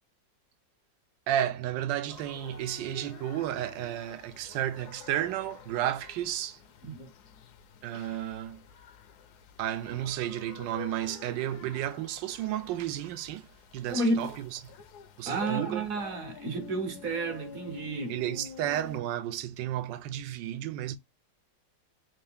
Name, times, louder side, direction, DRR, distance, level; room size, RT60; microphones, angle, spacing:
voice 1, 1.3-6.6 7.8-8.6 9.6-13.5 13.7-14.6 15.2-15.9 18.1-21.0, right 12 dB, 80° right, 1.3 m, -32 dB
sound 1, 2.1-19.0, left 8 dB, 70° left, 1.1 m, -48 dB
voice 2, 13.9-14.3 15.3-18.2, right 2 dB, 55° right, 1.1 m, -31 dB
3.5 x 2.7 x 3.4 m
omnidirectional pair, 2.0 m